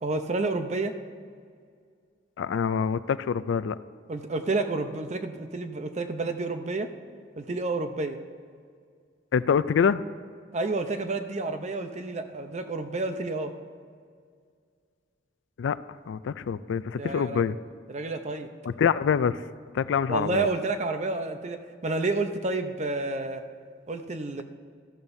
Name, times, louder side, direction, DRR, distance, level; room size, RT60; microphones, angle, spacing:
voice 1, 0.0-0.9 4.1-6.9 7.4-8.2 10.5-13.5 17.0-17.4 17.9-18.5 20.1-21.6 21.8-23.4 23.9-24.4, right 3 dB, 35° right, 7 dB, 0.6 m, -30 dB
voice 2, 2.4-3.8 9.3-10.0 15.6-15.8 16.1-17.6 18.6-19.4 19.7-20.4, left 6 dB, 80° left, 15 dB, 0.3 m, -25 dB
14.0 x 12.5 x 2.7 m, 2.1 s
head